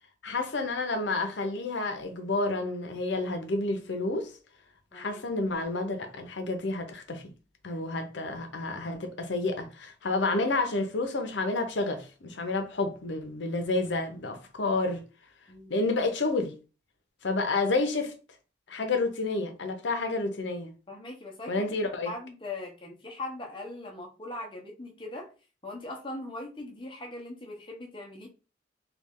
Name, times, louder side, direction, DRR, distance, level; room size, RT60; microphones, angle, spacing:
voice 1, 0.2-4.3 4.9-7.2 7.6-15.0 15.7-16.5 17.2-18.1 18.7-20.7 21.5-22.1, left 3 dB, 75° left, 0.7 m, -30 dB
voice 2, 20.9-21.7 22.0-25.3 25.6-28.3, left 2 dB, 25° left, 0.7 m, -40 dB
3.2 x 2.4 x 3.6 m
head